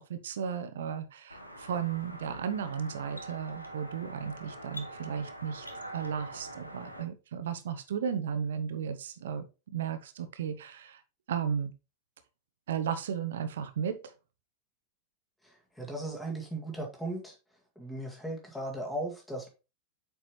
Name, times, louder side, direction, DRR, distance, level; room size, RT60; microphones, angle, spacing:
voice 1, 0.0-5.7 5.9-9.4 9.7-11.0 11.3-11.7 12.7-14.1, right 7 dB, 60° right, 0.8 m, -34 dB
sound 1, 1.3-7.0, right 1 dB, 85° left, 1.1 m, -44 dB
voice 2, 15.4-17.3 17.8-19.5, right 1 dB, 5° left, 1.9 m, -37 dB
8.1 x 4.6 x 3.0 m
figure-of-eight pair, 90°, 0 cm